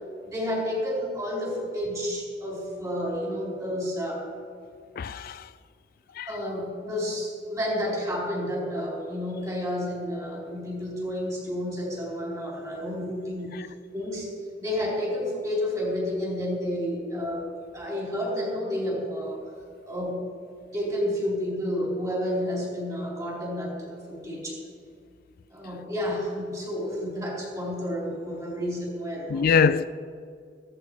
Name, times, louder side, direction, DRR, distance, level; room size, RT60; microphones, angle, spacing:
voice 1, 0.2-4.3 6.3-13.6 13.9-14.3 14.6-17.4 17.7-19.4 19.8-20.3 20.7-24.6 25.5-29.7, equal, 20° right, 4.0 m, -30 dB
voice 2, 5.0-5.5 6.2-6.3 29.3-29.9, left 6 dB, 55° left, 0.3 m, -23 dB
15.5 x 14.0 x 4.8 m
head